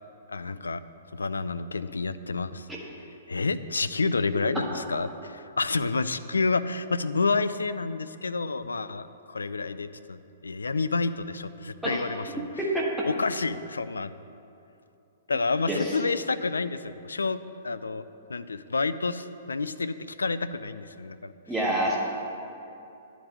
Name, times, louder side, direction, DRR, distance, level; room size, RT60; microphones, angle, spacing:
voice 1, 0.3-0.8 1.1-2.7 3.3-12.5 13.1-14.1 15.3-18.0 18.3-21.3, left 4 dB, 75° left, 13 dB, 0.4 m, -29 dB
voice 2, 12.6-12.9 15.7-15.9 21.5-22.0, right 1 dB, 5° right, -4 dB, 1.4 m, -26 dB
10.5 x 5.0 x 8.3 m, 2.7 s
figure-of-eight pair, 110°, 0 cm